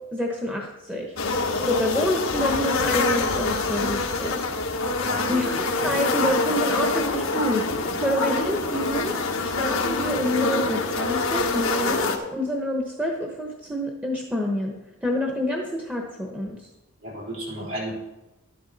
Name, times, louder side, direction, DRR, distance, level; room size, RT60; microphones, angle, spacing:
voice 1, 0.1-1.1 1.6-4.4 5.3-5.6 5.8-7.6 8.0-9.1 9.4-14.7 15.0-16.6, equal, 5° right, 0 dB, 1.1 m, -27 dB
sound 1, 1.2-12.2, left 3 dB, 85° left, 1.3 m, -25 dB
voice 2, 5.0-5.5 17.0-17.9, right 1 dB, 70° right, -3 dB, 4.3 m, -33 dB
12.0 x 9.6 x 4.1 m, 1.0 s
head